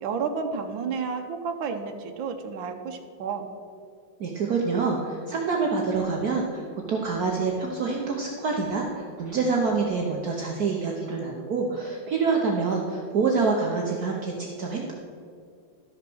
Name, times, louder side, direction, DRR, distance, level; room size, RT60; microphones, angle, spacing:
voice 1, 0.0-3.5, right 5 dB, 75° right, 5 dB, 1.6 m, -31 dB
voice 2, 4.2-14.9, right 4 dB, 55° right, -1 dB, 1.3 m, -26 dB
12.5 x 6.5 x 6.2 m, 2.3 s
omnidirectional pair, 2.1 m